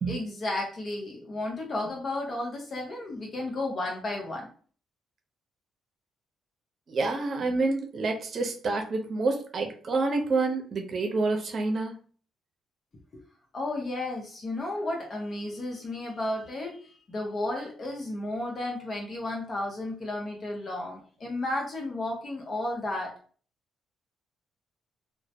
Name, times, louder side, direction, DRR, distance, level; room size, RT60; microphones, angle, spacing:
voice 1, 0.1-4.5 13.1-13.2 13.5-23.1, left 2 dB, 45° left, 0 dB, 0.7 m, -33 dB
voice 2, 6.9-11.9, right 3 dB, 50° right, 3 dB, 0.6 m, -28 dB
2.2 x 2.0 x 2.8 m, 0.42 s
cardioid pair, 90°, 0 cm